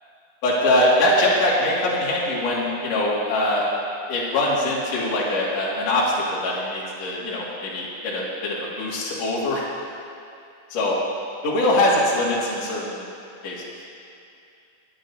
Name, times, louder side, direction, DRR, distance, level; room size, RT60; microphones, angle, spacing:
voice 1, 0.4-3.6 4.1-9.7 10.7-11.0 11.4-13.0 13.4-13.6, left 1 dB, 45° left, -6 dB, 2.9 m, -22 dB
21.0 x 11.0 x 2.9 m, 2.5 s
omnidirectional pair, 5.4 m